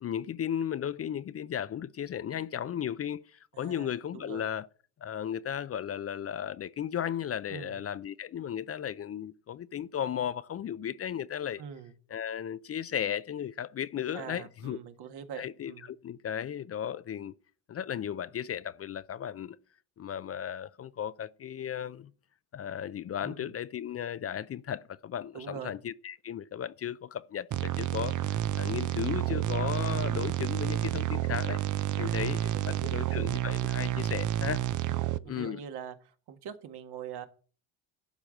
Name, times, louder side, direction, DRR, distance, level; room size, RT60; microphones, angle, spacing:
voice 1, 0.0-4.7 5.0-11.6 12.1-14.8 15.3-15.7 16.0-17.3 17.7-19.6 20.0-22.1 22.5-31.6 32.0-34.6 35.3-35.6, left 9 dB, 35° left, 0.5 m, -35 dB
voice 2, 3.5-4.5 7.5-7.8 11.6-11.9 14.1-15.9 23.2-23.5 25.3-25.8 29.9-30.3 32.0-33.3 34.8-37.3, right 8 dB, 65° right, 1.8 m, -44 dB
sound 1, 27.5-35.2, right 13 dB, 45° right, 0.7 m, -30 dB
12.0 x 5.0 x 7.4 m
supercardioid pair, 80°, 42 cm